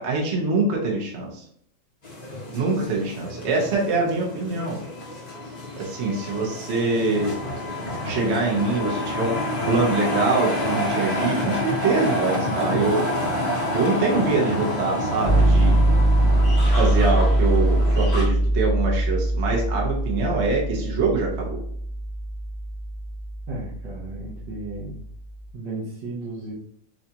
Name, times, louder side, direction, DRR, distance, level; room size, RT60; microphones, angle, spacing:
voice 1, 0.0-1.4 2.5-4.8 5.8-7.3 8.0-9.4 9.7-13.1 13.7-15.8 16.6-21.6, right 3 dB, 45° right, -2 dB, 0.9 m, -24 dB
sound 1, 2.0-18.2, left 1 dB, 30° left, 0.8 m, -28 dB
sound 2, 15.2-25.1, right 1 dB, 55° left, 1.1 m, -22 dB
voice 2, 23.5-25.0 25.5-26.5, right 2 dB, 75° right, -6 dB, 1.7 m, -34 dB
6.8 x 2.4 x 2.9 m, 0.67 s
omnidirectional pair, 2.1 m